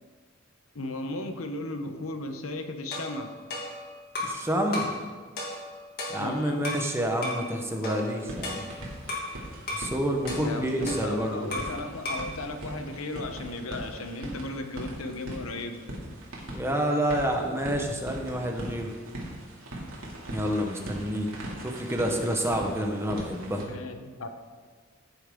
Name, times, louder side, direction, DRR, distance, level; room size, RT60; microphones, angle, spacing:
voice 1, 0.7-3.3 6.2-6.7 10.4-15.8 23.5-24.3, left 2 dB, 85° left, 6 dB, 1.0 m, -35 dB
sound 1, 2.9-4.4 4.7-5.0 5.4-6.9 7.2-7.5 7.8-9.3 9.7-9.9 10.3-11.8 12.0-12.3, left 2 dB, 50° left, 2.5 m, -35 dB
voice 2, 4.2-4.9 6.1-8.6 9.7-11.6 16.5-18.9 20.3-21.3 21.6-23.6, equal, 10° right, 2 dB, 1.1 m, -28 dB
sound 2, 7.9-23.7, right 1 dB, 85° right, 2.7 m, -41 dB
15.0 x 7.0 x 3.8 m, 1.5 s
head